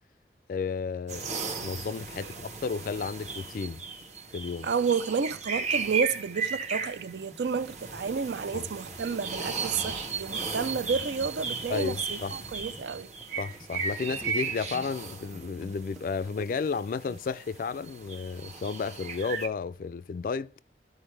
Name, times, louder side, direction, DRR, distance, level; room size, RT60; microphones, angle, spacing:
voice 1, 0.5-1.3 1.6-3.8 4.3-4.7 8.5-8.7 11.7-12.3 13.4-20.5, left 5 dB, 50° left, 0.3 m, -32 dB
sound 1, 1.1-19.5, right 5 dB, 40° right, 1.0 m, -36 dB
sound 2, 4.3-4.4 4.7-5.7 6.3-17.2, equal, ahead, 0.6 m, -49 dB
voice 2, 4.6-13.1, right 5 dB, 75° right, 0.5 m, -30 dB
13.0 x 4.6 x 3.2 m
head